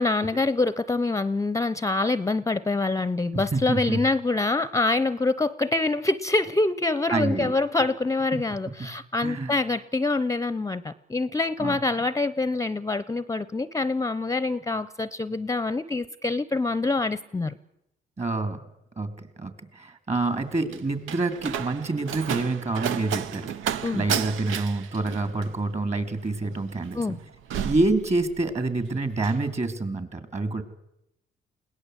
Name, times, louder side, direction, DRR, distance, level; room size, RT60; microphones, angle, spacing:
voice 1, 0.0-17.6 23.8-24.0 26.9-27.2, left 3 dB, 15° left, 16 dB, 0.7 m, -25 dB
voice 2, 3.3-4.0 7.1-7.6 8.8-8.9 9.2-9.6 11.6-11.8 18.2-18.6 19.0-27.2 27.6-30.6, right 2 dB, 35° right, 10 dB, 2.9 m, -27 dB
Slam, 20.2-28.7 29.0-29.4, right 9 dB, 85° right, 0.8 m, -33 dB
21.0 x 18.0 x 8.0 m, 0.81 s
cardioid pair, 90°, 20 cm